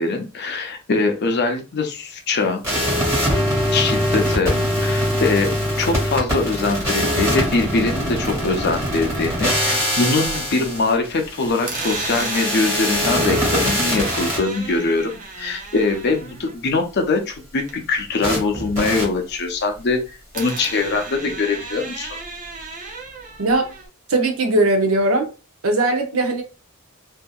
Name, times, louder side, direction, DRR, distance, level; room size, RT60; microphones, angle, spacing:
voice 1, 0.0-2.6 3.7-22.2, left 3 dB, 55° left, 0.6 m, -22 dB
sound 1, 2.6-14.4 18.2-18.4 18.8-19.0, equal, 15° right, 1.5 m, -22 dB
sound 2, 9.7-10.8 11.1-18.0 18.3-20.0 20.3-23.9, right 3 dB, 40° right, 0.7 m, -34 dB
voice 2, 23.4-23.8 24.1-25.3 25.6-26.4, right 2 dB, 75° right, 0.6 m, -19 dB
2.7 x 2.6 x 2.3 m
head